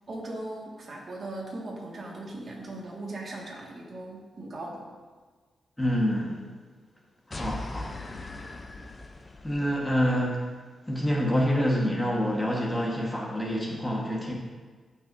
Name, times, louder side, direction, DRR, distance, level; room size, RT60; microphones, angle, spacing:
voice 1, 0.1-4.9, right 2 dB, 45° right, -2 dB, 1.7 m, -38 dB
voice 2, 5.8-6.5 7.3-7.9 9.4-10.5 10.9-14.3, equal, 15° left, -2 dB, 1.3 m, -27 dB
sound 1, 7.3-9.9, left 2 dB, 30° left, 0.5 m, -39 dB
11.5 x 5.5 x 2.6 m, 1.4 s
cardioid pair, 95°, 0 cm